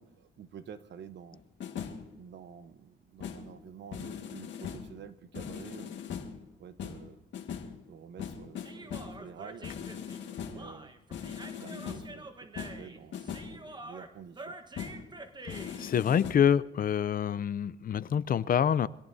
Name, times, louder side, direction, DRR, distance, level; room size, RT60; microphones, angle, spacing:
voice 1, 0.0-1.4 2.1-5.9 6.6-7.2 7.9-9.7 10.4-10.9 11.4-12.3 12.6-14.6, right 7 dB, 65° right, 12 dB, 1.0 m, -49 dB
sound 1, 1.3-2.1 3.2-3.5 3.9-5.0 5.3-6.4 6.8-7.8 8.2-9.2 9.6-10.7 11.1-12.2 12.6-13.6 14.8-15.1 15.5-16.3, left 7 dB, 65° left, 1.9 m, -40 dB
Human voice, 8.6-15.9, right 2 dB, 20° right, 1.3 m, -47 dB
voice 2, 15.8-18.9, left 8 dB, 45° left, 17 dB, 0.6 m, -26 dB
25.0 x 17.5 x 2.8 m, 1.0 s
cardioid pair, 90°, 20 cm